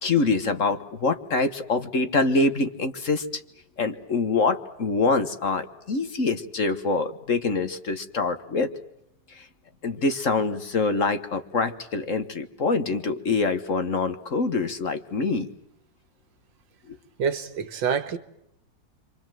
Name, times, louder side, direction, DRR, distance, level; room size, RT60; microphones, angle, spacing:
voice 1, 0.0-3.4 3.8-8.7 9.3-9.5 9.8-15.5 16.9-17.0, left 3 dB, 45° left, 1.7 m, -25 dB
voice 2, 17.2-18.2, right 6 dB, 90° right, 2.1 m, -26 dB
29.5 x 24.5 x 7.7 m
omnidirectional pair, 2.0 m